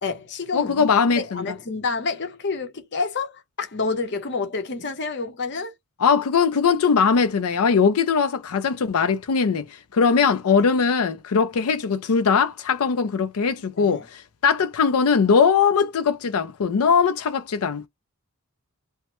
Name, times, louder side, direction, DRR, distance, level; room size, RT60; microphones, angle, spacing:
voice 1, 0.0-0.9 1.1-5.7 13.7-14.1, left 4 dB, 55° left, 0.8 m, -28 dB
voice 2, 0.5-1.4 6.0-17.9, left 5 dB, 90° left, 0.5 m, -20 dB
3.0 x 2.1 x 3.0 m
head